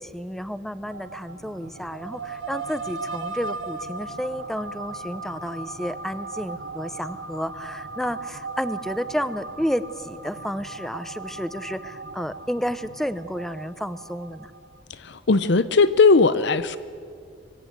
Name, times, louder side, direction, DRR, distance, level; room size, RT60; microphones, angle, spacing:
voice 1, 0.0-14.5, equal, ahead, 14 dB, 0.7 m, -31 dB
sound 1, 0.9-14.8, right 3 dB, 85° right, 1.4 m, -37 dB
voice 2, 15.0-16.8, left 4 dB, 65° left, 14 dB, 0.7 m, -18 dB
24.0 x 24.0 x 8.0 m, 2.2 s
head